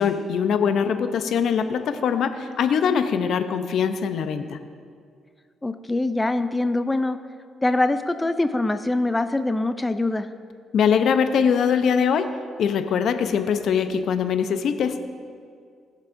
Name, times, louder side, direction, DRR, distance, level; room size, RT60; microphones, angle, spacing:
voice 1, 0.0-4.6 10.7-15.1, left 7 dB, 70° left, 9 dB, 0.6 m, -22 dB
voice 2, 5.6-7.2 7.6-10.3, left 2 dB, 15° left, 9 dB, 0.4 m, -23 dB
20.0 x 7.3 x 2.6 m, 2.2 s
cardioid pair, 90°, 0 cm